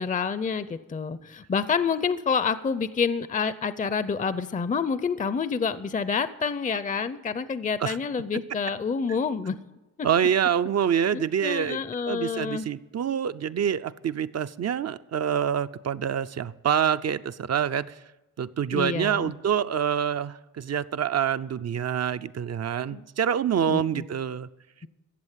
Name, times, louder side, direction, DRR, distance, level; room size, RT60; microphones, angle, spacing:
voice 1, 0.0-9.6 11.1-12.7 18.7-19.3 22.9-23.0 23.7-24.0, left 5 dB, 25° left, 14 dB, 0.5 m, -28 dB
voice 2, 10.0-18.0 18.4-24.5, right 8 dB, 55° right, 12 dB, 0.5 m, -26 dB
14.5 x 7.7 x 7.4 m, 1.0 s
cardioid pair, 85°, 32 cm